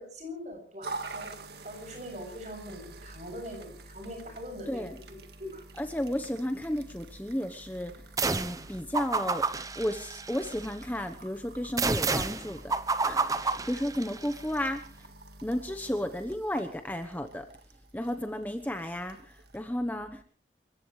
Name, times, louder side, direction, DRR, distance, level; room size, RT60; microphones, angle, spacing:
voice 1, 0.0-1.4 1.6-5.6, equal, 40° right, 4 dB, 7.7 m, -42 dB
sound 1, 0.8-19.6, right 3 dB, 65° right, 1.8 m, -48 dB
voice 2, 5.8-7.9 8.3-9.5 9.7-12.7 13.0-15.1 15.4-17.5 17.9-20.2, equal, 10° left, 6 dB, 1.0 m, -33 dB
sound 2, 8.2-8.6 8.9-10.7 11.8-14.4, right 3 dB, 20° right, 0.8 m, -30 dB
28.5 x 15.5 x 3.2 m, 0.44 s
head